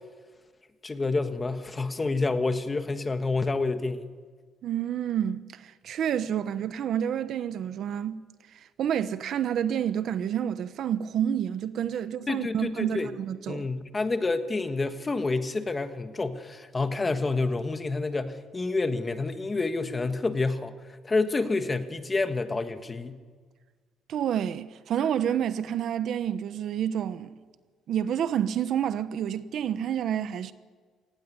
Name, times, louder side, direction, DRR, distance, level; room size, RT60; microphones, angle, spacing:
voice 1, 0.8-4.1 12.3-13.1 13.5-20.7 21.0-23.2, left 3 dB, 15° left, 1.4 m, -28 dB
voice 2, 4.6-8.2 8.5-13.7 24.1-27.4 27.9-30.5, right 9 dB, 50° right, 0.9 m, -29 dB
28.5 x 18.5 x 9.5 m
cardioid pair, 170°, 0 cm